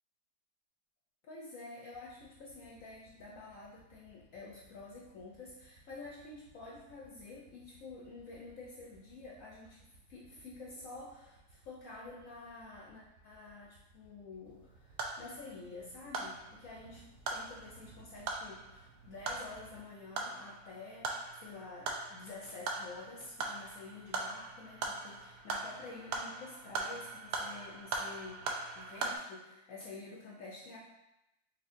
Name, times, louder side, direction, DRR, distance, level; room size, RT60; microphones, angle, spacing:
voice 1, 1.2-30.8, left 3 dB, 65° left, -4 dB, 1.0 m, -49 dB
Motorcycle / Idling, 1.9-19.8, right 2 dB, 85° right, 2.4 m, -63 dB
sound 1, 14.5-29.2, right 3 dB, 70° right, 1.0 m, -41 dB
5.5 x 3.0 x 2.5 m, 0.91 s
omnidirectional pair, 1.7 m